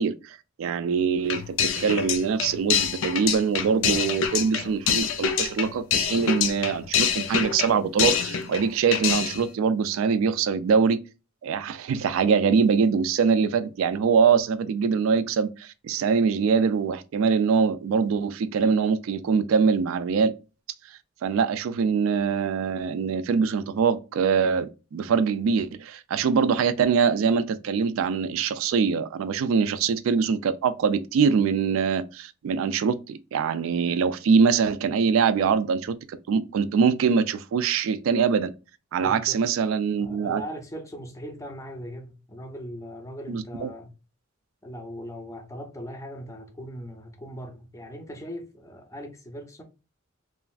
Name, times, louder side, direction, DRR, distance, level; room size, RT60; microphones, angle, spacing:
voice 1, 0.0-11.0 11.4-20.3 21.2-38.5 38.9-40.4 43.3-43.7, right 6 dB, 85° right, 0.3 m, -23 dB
sound 1, 1.2-8.7 8.9-9.4, left 7 dB, 75° left, 0.4 m, -26 dB
voice 2, 38.9-39.4 40.0-44.0 44.6-49.6, equal, 15° left, 0.5 m, -39 dB
3.0 x 2.4 x 2.4 m
head